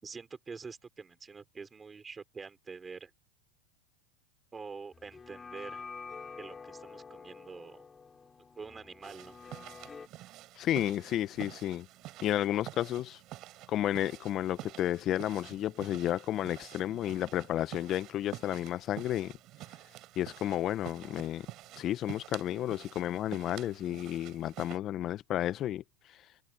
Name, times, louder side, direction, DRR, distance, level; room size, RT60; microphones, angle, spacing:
voice 1, 0.0-3.1 4.5-5.9 6.4-7.9 8.6-9.4, right 5 dB, 15° right, 5.7 m, -46 dB
sound 1, 4.9-10.1, left 5 dB, 20° left, 3.3 m, -48 dB
sound 2, 9.0-24.8, right 16 dB, 45° right, 6.3 m, -48 dB
voice 2, 10.6-11.9 12.2-13.2 13.7-19.3 20.2-21.5 21.8-25.8, left 12 dB, 40° left, 0.8 m, -32 dB
hypercardioid pair, 120°, 0 cm